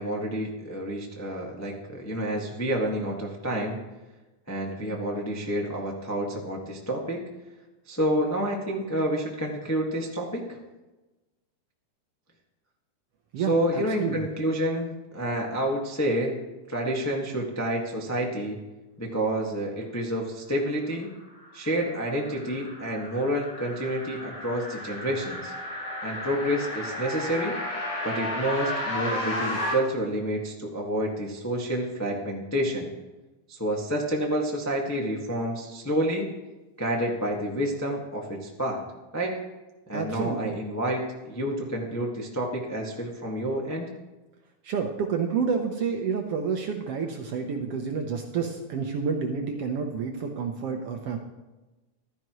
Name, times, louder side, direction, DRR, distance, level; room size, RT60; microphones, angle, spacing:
voice 1, 0.0-3.8 4.5-7.2 7.9-10.6 13.4-14.9 15.1-16.4 16.7-18.6 19.0-21.1 21.5-25.5 26.0-27.6 28.0-32.9 33.5-36.3 36.8-38.8 39.1-39.3 39.9-43.9, right 1 dB, 20° left, -1 dB, 0.4 m, -29 dB
voice 2, 13.3-14.3 39.9-40.6 44.6-51.2, right 6 dB, 70° right, 3 dB, 1.5 m, -29 dB
sound 1, 21.4-29.7, left 1 dB, 60° left, 5.8 m, -33 dB
15.0 x 13.0 x 3.1 m, 1.1 s
omnidirectional pair, 3.6 m